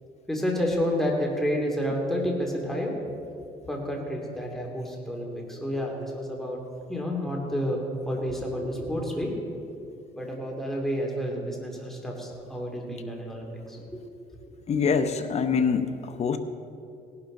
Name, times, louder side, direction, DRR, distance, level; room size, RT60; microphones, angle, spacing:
voice 1, 0.3-2.9 3.7-6.6 6.9-9.4 10.1-14.0, equal, ahead, -1 dB, 2.5 m, -30 dB
voice 2, 14.7-16.4, left 6 dB, 40° left, 9 dB, 0.9 m, -25 dB
18.0 x 11.5 x 3.9 m, 2.5 s
cardioid pair, 110°, 17 cm